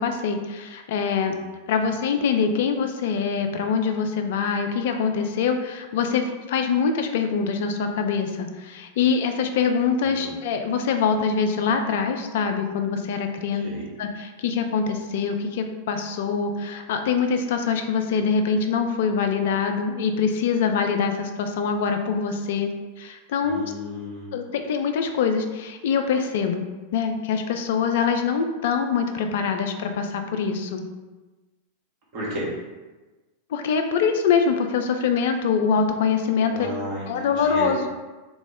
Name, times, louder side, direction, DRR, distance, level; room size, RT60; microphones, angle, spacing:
voice 1, 0.0-1.3 1.7-13.7 14.0-22.7 23.0-23.7 24.3-26.7 26.9-30.8 33.5-36.7 37.1-37.9, left 6 dB, 55° left, 6 dB, 0.3 m, -24 dB
voice 2, 10.0-10.3 13.6-13.9 23.4-24.6 32.1-32.5 36.5-37.9, equal, 45° right, -6 dB, 1.2 m, -33 dB
3.7 x 2.0 x 3.4 m, 1.2 s
figure-of-eight pair, 90°, 0 cm